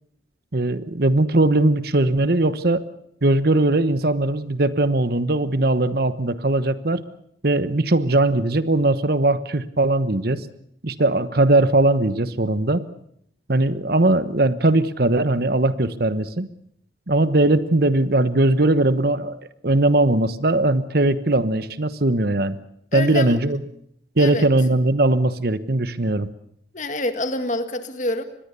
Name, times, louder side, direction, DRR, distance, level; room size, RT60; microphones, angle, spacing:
voice 1, 0.5-2.8 3.2-7.0 7.4-10.5 10.8-12.8 13.5-16.5 17.1-22.6 22.9-23.6 24.2-26.3, right 2 dB, 55° right, 13 dB, 1.1 m, -20 dB
voice 2, 22.9-23.4 24.2-24.5 26.7-28.2, left 2 dB, 40° left, 9 dB, 1.9 m, -26 dB
25.0 x 20.5 x 6.9 m, 0.69 s
head